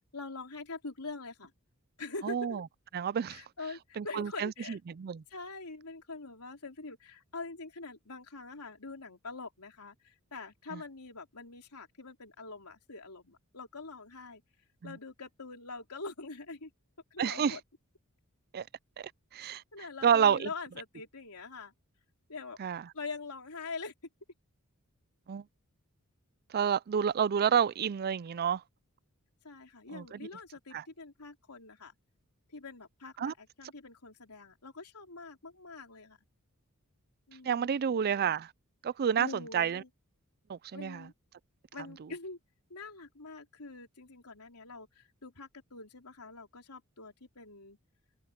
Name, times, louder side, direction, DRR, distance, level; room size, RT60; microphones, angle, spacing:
voice 1, 0.1-1.5 2.0-2.6 3.3-4.8 5.3-14.4 14.8-16.7 17.1-17.6 19.4-21.7 22.3-22.6 22.9-23.9 29.4-31.9 32.5-36.2 37.3-37.8 39.2-39.9 40.7-41.1 41.7-42.4 42.7-47.8, left 3 dB, 85° left, 3.5 m, -44 dB
voice 2, 2.2-2.6 2.9-3.4 4.0-5.2 10.7-10.8 14.8-14.9 17.2-17.6 18.5-18.7 19.0-19.6 20.0-20.5 22.6-22.8 25.3-25.4 26.5-28.6 29.9-30.2 30.7-30.8 33.2-33.3 37.4-38.5 38.8-39.8 40.5-41.1 42.0-42.1, right 7 dB, 45° right, 0.4 m, -29 dB
open air
head